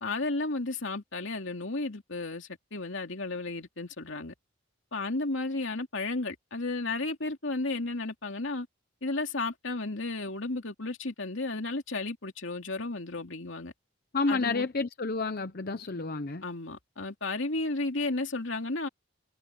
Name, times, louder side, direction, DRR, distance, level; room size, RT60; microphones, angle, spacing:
voice 1, 0.0-4.3 4.9-8.7 9.0-13.7 14.3-14.7 16.4-18.9, left 2 dB, 60° left, 2.7 m, -33 dB
voice 2, 14.1-16.4, left 3 dB, 45° left, 0.7 m, -30 dB
head